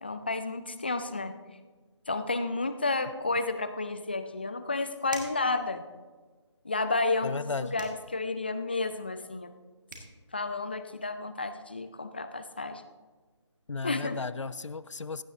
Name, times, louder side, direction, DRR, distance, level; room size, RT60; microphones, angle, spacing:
voice 1, 0.0-1.4 2.1-5.8 6.6-9.5 10.3-12.8 13.8-14.2, left 3 dB, 20° left, 11 dB, 0.3 m, -31 dB
sound 1, 5.1-5.5 7.8-8.0 9.6-9.7 9.9-10.1, right 3 dB, 40° right, 1.9 m, -42 dB
voice 2, 7.2-7.8 13.7-15.2, left 4 dB, 85° left, 16 dB, 0.5 m, -34 dB
16.0 x 10.5 x 2.7 m, 1.4 s
figure-of-eight pair, 160°, 15 cm